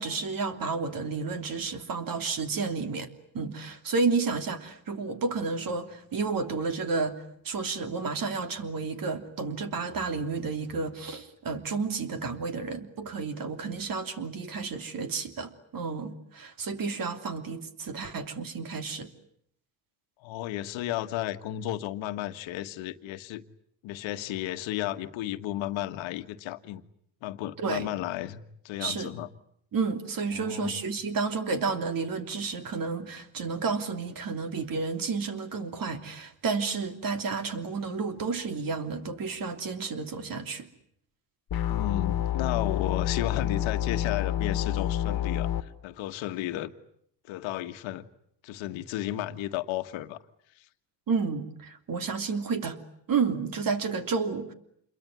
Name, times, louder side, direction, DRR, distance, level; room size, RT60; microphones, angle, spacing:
voice 1, 0.0-3.1 3.3-19.1 27.6-27.9 28.8-29.1 29.7-40.7 51.1-52.8 53.1-54.5, right 4 dB, 45° right, 3.1 m, -31 dB
voice 2, 20.2-23.4 23.8-26.8 27.2-29.3 30.3-30.8 41.7-46.7 47.3-48.1 48.4-50.2 50.6-50.7, left 13 dB, 85° left, 1.6 m, -33 dB
sound 1, 41.5-45.6, left 11 dB, 50° left, 1.8 m, -28 dB
28.0 x 22.5 x 9.6 m
cardioid pair, 105°, 45 cm